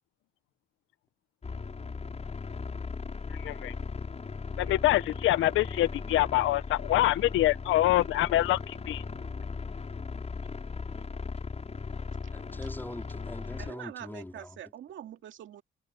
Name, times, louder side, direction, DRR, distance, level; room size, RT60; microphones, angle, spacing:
sound 1, 1.4-13.7, left 4 dB, 35° left, 5.8 m, -38 dB
voice 1, 3.4-3.7 4.6-9.0, left 15 dB, 85° left, 0.8 m, -25 dB
voice 2, 12.3-14.6, left 1 dB, 10° left, 3.8 m, -42 dB
voice 3, 13.6-15.6, right 11 dB, 75° right, 2.3 m, -44 dB
cardioid pair, 90°, 20 cm